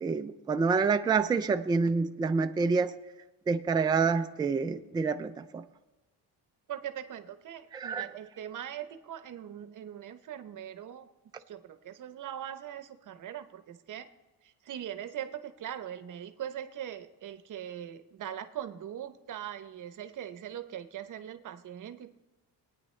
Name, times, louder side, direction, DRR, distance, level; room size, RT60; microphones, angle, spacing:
voice 1, 0.0-2.9 3.5-5.6 7.7-8.1, right 4 dB, 10° right, 8 dB, 0.3 m, -27 dB
voice 2, 6.7-11.1 11.5-14.1 14.4-22.1, right 10 dB, 50° right, 10 dB, 0.8 m, -41 dB
21.5 x 9.3 x 3.2 m, 1.1 s
cardioid pair, 150°, 40 cm